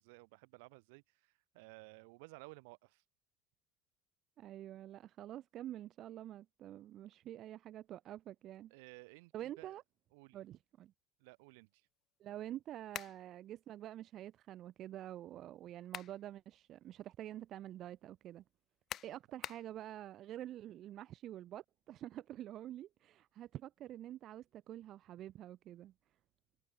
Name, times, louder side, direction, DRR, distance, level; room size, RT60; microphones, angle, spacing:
voice 1, 0.0-3.0 8.7-9.8 10.1-10.4 11.2-11.9, right 28 dB, 80° right, 6.6 m, -56 dB
voice 2, 4.4-8.7 9.3-9.8 10.3-10.9 12.2-18.4 19.0-25.9, right 12 dB, 45° right, 1.5 m, -47 dB
sound 1, 12.9-13.2 15.6-16.2 16.7-16.8 18.9-19.7, left 11 dB, 45° left, 0.4 m, -45 dB
cardioid pair, 130°, 0 cm